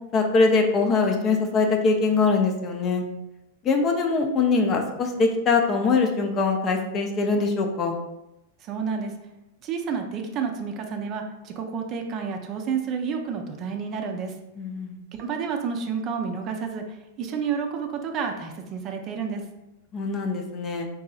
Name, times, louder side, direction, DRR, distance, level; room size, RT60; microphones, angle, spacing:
voice 1, 0.1-3.0 3.6-8.0 14.6-15.0 19.9-20.9, left 4 dB, 35° left, 4 dB, 0.5 m, -22 dB
voice 2, 8.6-9.1 9.6-14.4 15.2-19.4, right 6 dB, 40° right, 4 dB, 0.4 m, -30 dB
3.8 x 2.7 x 2.4 m, 0.91 s
hypercardioid pair, 110°, 0 cm